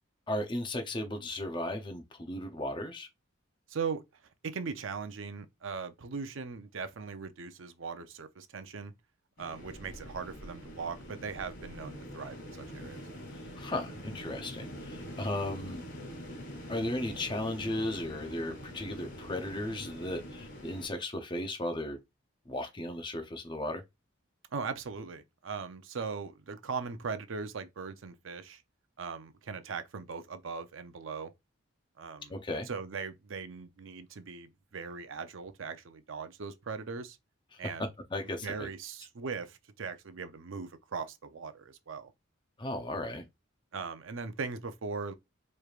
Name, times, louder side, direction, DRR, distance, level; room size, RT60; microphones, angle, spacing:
voice 1, 0.3-3.1 13.6-15.8 16.7-22.0 22.5-23.8 32.3-32.7 37.5-37.6 38.1-38.7 42.6-43.2, left 1 dB, 25° left, 0.6 m, -35 dB
voice 2, 3.7-4.0 4.4-8.9 9.4-13.0 24.5-28.6 29.0-31.3 32.0-32.3 32.7-37.2 37.6-37.9 38.4-42.1 43.7-45.1, right 5 dB, 70° right, 0.6 m, -39 dB
sound 1, 9.4-20.9, equal, 65° left, 1.9 m, -44 dB
4.6 x 3.2 x 2.4 m
head